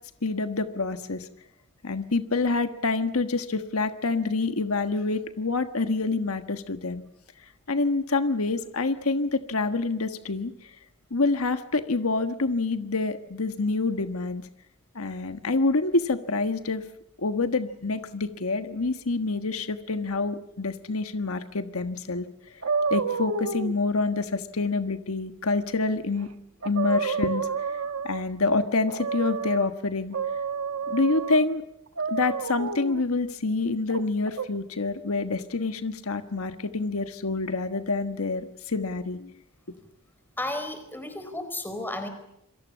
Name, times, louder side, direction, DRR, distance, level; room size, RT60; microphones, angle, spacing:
voice 1, 0.2-1.3 1.8-7.0 7.7-10.7 11.1-14.4 14.9-16.8 17.2-22.2 22.9-26.3 26.6-30.2 30.9-31.6 32.1-39.3, left 3 dB, 85° left, 9 dB, 1.4 m, -27 dB
sound 1, 22.6-23.7 26.2-26.3 26.6-28.3 28.9-29.7 30.1-31.5 32.0-33.0 33.9-34.5, right 5 dB, 75° right, 1.3 m, -29 dB
voice 2, 40.4-42.1, left 1 dB, 10° left, 8 dB, 4.4 m, -33 dB
27.5 x 23.0 x 7.4 m, 0.81 s
head